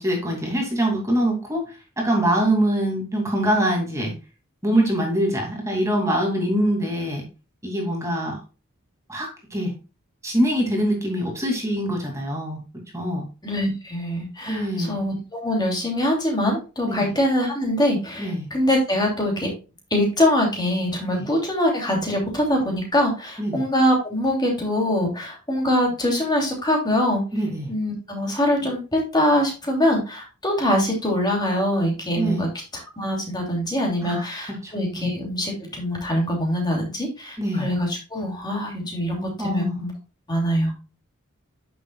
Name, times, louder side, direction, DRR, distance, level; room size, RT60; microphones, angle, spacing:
voice 1, 0.0-1.7 2.0-4.1 4.6-7.2 7.6-8.4 9.1-9.7 10.2-12.6 12.9-13.2 14.5-15.0 16.8-17.1 18.2-18.5 21.1-21.2 23.4-23.5 27.3-27.7 32.2-32.5 34.0-34.2 34.6-35.1 37.4-37.7 39.4-39.8, right 1 dB, 15° right, 0 dB, 2.5 m, -24 dB
voice 2, 13.4-19.5 19.9-27.2 27.7-32.5 33.0-39.9 40.3-40.7, left 1 dB, 20° left, 0 dB, 2.8 m, -23 dB
10.0 x 7.1 x 2.3 m, 0.31 s
head